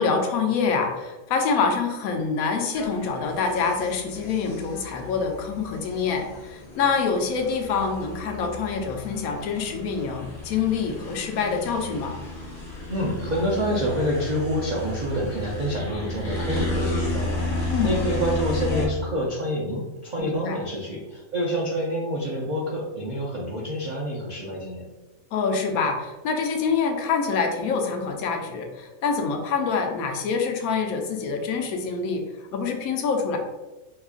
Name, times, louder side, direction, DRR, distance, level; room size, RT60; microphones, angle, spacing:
voice 1, 0.0-12.2 17.7-18.0 20.2-20.6 25.3-32.2 32.5-33.4, left 5 dB, 85° left, 3 dB, 1.0 m, -26 dB
sound 1, 2.7-18.9, left 1 dB, 40° left, 0.6 m, -33 dB
voice 2, 12.9-24.8, equal, 65° right, -4 dB, 0.4 m, -27 dB
2.9 x 2.3 x 3.6 m, 1.1 s
omnidirectional pair, 1.5 m